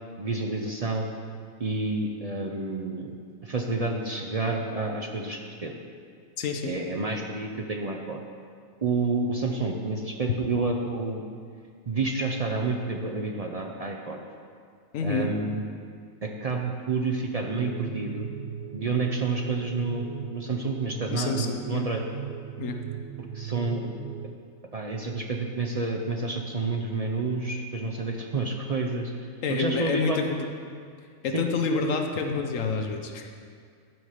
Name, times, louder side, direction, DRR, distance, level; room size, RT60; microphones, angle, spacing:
voice 1, 0.2-1.1 1.6-3.1 3.4-5.7 6.6-8.2 8.8-11.2 11.9-14.2 15.0-15.6 16.2-18.3 18.7-22.0 23.2-23.9 24.7-29.1 29.5-30.3 31.3-31.5, right 3 dB, 45° right, 1 dB, 0.5 m, -29 dB
voice 2, 6.4-6.7 14.9-15.3 21.1-21.9 22.6-22.8 29.4-30.4 31.2-33.3, left 4 dB, 75° left, 4 dB, 1.1 m, -28 dB
sound 1, 17.4-24.3, right 9 dB, 80° right, 1.1 m, -38 dB
12.5 x 5.8 x 4.9 m, 2.2 s
omnidirectional pair, 1.4 m